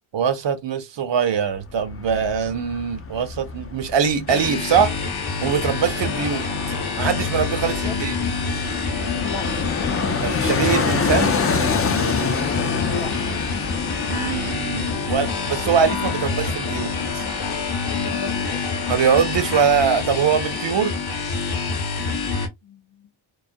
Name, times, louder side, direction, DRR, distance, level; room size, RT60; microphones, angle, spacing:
voice 1, 0.1-5.0 5.4-6.4 7.0-8.2 10.2-11.4 12.8-13.0 14.1-17.2 18.9-21.0, right 7 dB, 60° right, 0.6 m, -22 dB
Fixed-wing aircraft airplane, 1.6-18.5 18.8-18.9, left 5 dB, 30° left, 0.3 m, -28 dB
sound 1, 4.3-22.5, left 4 dB, 50° left, 0.8 m, -27 dB
voice 2, 5.9-6.4 7.7-8.0 9.2-9.5 12.9-13.1 18.0-18.6 22.6-23.1, left 5 dB, 85° left, 0.7 m, -36 dB
2.3 x 2.1 x 2.5 m
wide cardioid pair, 80°, 50 cm